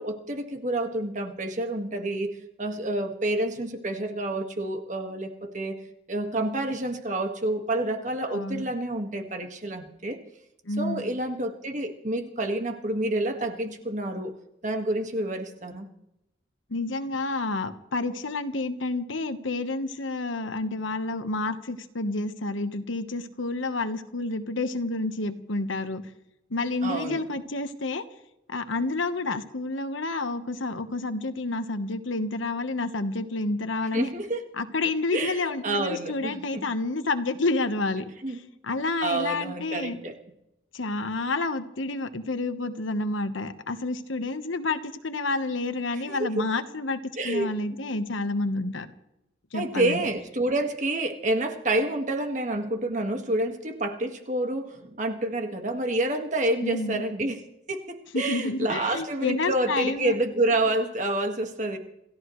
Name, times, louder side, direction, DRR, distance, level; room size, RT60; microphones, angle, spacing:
voice 1, 0.0-5.8 6.1-10.2 10.8-14.3 14.6-15.9 26.8-27.2 33.9-34.4 35.1-36.7 38.2-38.4 39.0-40.2 45.9-46.3 47.2-47.5 49.5-57.4 57.7-61.8, right 1 dB, 40° right, 5 dB, 1.8 m, -28 dB
voice 2, 8.3-8.6 10.7-11.1 16.7-26.0 26.5-28.0 28.5-34.1 34.6-38.1 38.6-40.0 40.7-48.9 49.5-50.0 56.6-57.0 58.1-60.1, left 2 dB, 90° left, 9 dB, 1.3 m, -29 dB
27.5 x 15.0 x 3.2 m, 0.85 s
head